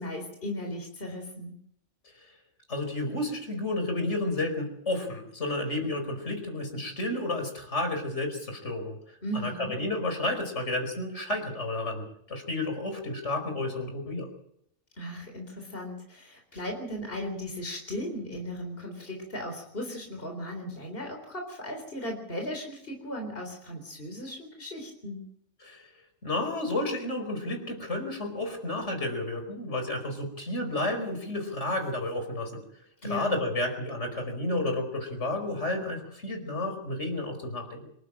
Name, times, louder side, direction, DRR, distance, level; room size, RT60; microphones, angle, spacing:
voice 1, 0.0-1.6 9.2-9.7 15.0-25.2 33.0-33.3, equal, 50° left, 2 dB, 4.2 m, -37 dB
voice 2, 2.7-14.3 25.6-25.9 26.2-32.6 33.0-37.9, left 2 dB, 70° left, 5 dB, 5.3 m, -31 dB
26.5 x 12.0 x 8.8 m, 0.73 s
omnidirectional pair, 1.3 m